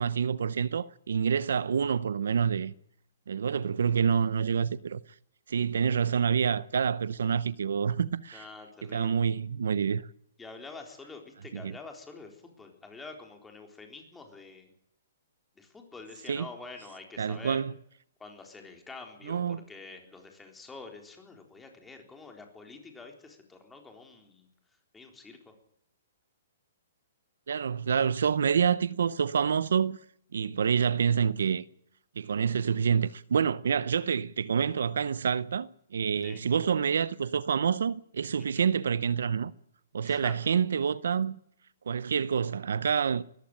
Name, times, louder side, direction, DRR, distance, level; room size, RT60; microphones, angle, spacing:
voice 1, 0.0-2.7 3.3-5.0 5.5-8.4 8.8-10.1 11.5-11.7 16.3-16.5 17.2-17.7 19.3-19.6 27.5-30.0 30.3-31.6 32.2-39.5 39.9-41.4 41.9-43.2, right 7 dB, 80° right, 0.7 m, -27 dB
voice 2, 8.3-9.2 10.4-14.7 15.6-17.6 18.2-24.5 24.9-25.5 36.2-36.4 38.6-38.7 40.0-40.3, left 3 dB, 10° left, 3.9 m, -47 dB
20.5 x 14.5 x 9.0 m
hypercardioid pair, 150°, 0 cm